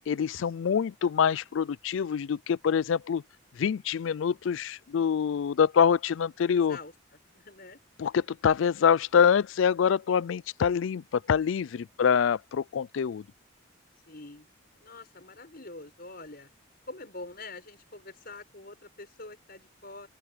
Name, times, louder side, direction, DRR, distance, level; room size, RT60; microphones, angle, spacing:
voice 1, 0.1-3.2 3.6-6.8 8.0-13.2, left 7 dB, 65° left, 0.3 m, -25 dB
voice 2, 6.5-6.9 7.3-7.8 11.7-12.1 14.1-14.5 14.8-16.5 16.9-20.1, left 2 dB, 45° left, 6.0 m, -45 dB
open air
head